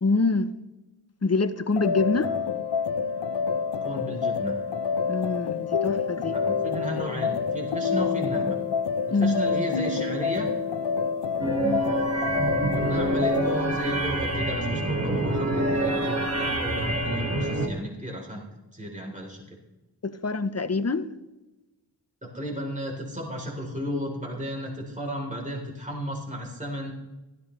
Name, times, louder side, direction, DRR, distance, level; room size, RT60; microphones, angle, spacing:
voice 1, 0.0-0.5 1.2-2.3 5.1-6.4 9.1-9.4 11.6-11.9 20.0-21.1, left 3 dB, 40° left, 0.9 m, -25 dB
sound 1, 1.8-13.6, left 6 dB, 80° left, 0.8 m, -27 dB
voice 2, 3.8-4.6 6.3-8.6 9.1-10.5 12.7-18.5 18.7-19.6 22.2-27.0, equal, 20° right, 3.7 m, -34 dB
sound 2, 11.4-17.7, right 2 dB, 35° right, 1.9 m, -26 dB
15.5 x 14.0 x 3.3 m
wide cardioid pair, 55°, 41 cm